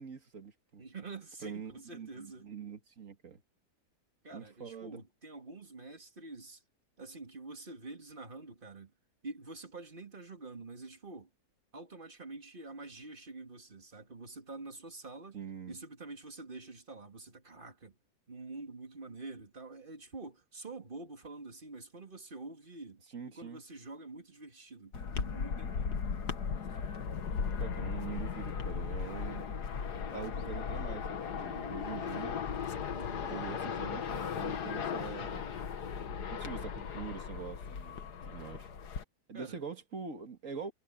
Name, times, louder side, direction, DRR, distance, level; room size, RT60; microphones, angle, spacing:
voice 1, 0.0-0.8 1.4-3.4 4.3-5.0 15.3-15.8 23.1-23.6 27.6-29.5 30.1-32.4 33.2-35.5 36.3-38.7 39.3-40.7, right 6 dB, 55° right, 2.2 m, -44 dB
voice 2, 0.8-2.5 4.2-6.6 7.0-8.9 9.2-11.3 11.7-15.4 15.7-18.0 18.3-23.0 23.3-26.1 32.9-33.3 39.3-39.6, right 3 dB, 35° right, 2.3 m, -47 dB
sound 1, 24.9-39.0, left 6 dB, 85° left, 1.9 m, -37 dB
omnidirectional pair, 1.7 m